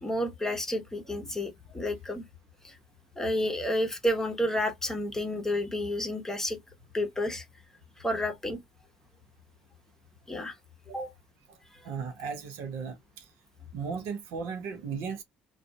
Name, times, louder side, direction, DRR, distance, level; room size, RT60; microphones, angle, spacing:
voice 1, 0.0-2.2 2.6-2.8 3.2-6.6 6.9-7.4 8.0-8.6 10.3-10.5 10.9-11.0 11.7-11.8, left 1 dB, 10° left, 1.0 m, -30 dB
voice 2, 11.8-13.2 13.7-15.2, right 5 dB, 70° right, 0.7 m, -36 dB
2.4 x 2.4 x 2.2 m
hypercardioid pair, 55°, 4 cm